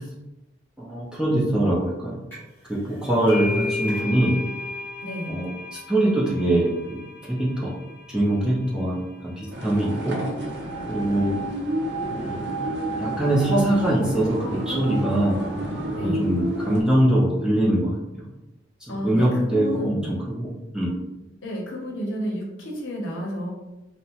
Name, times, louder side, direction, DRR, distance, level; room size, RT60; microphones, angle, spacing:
voice 1, 0.8-2.1 2.7-4.3 5.3-7.0 7.6-7.7 8.1-9.0 9.4-10.2 10.9-11.3 12.1-12.6 13.0-15.4 16.0-18.2 18.9-20.9, right 1 dB, 5° right, -7 dB, 0.5 m, -23 dB
sound 1, 2.3-2.6 2.9-10.2, left 3 dB, 10° left, 1.3 m, -35 dB
voice 2, 5.0-5.4 15.9-16.3 18.9-20.1 21.4-23.5, left 1 dB, 75° left, -1 dB, 0.6 m, -31 dB
sound 2, 9.5-16.8, right 1 dB, 60° right, 0.5 m, -30 dB
2.8 x 2.0 x 2.8 m, 0.97 s
head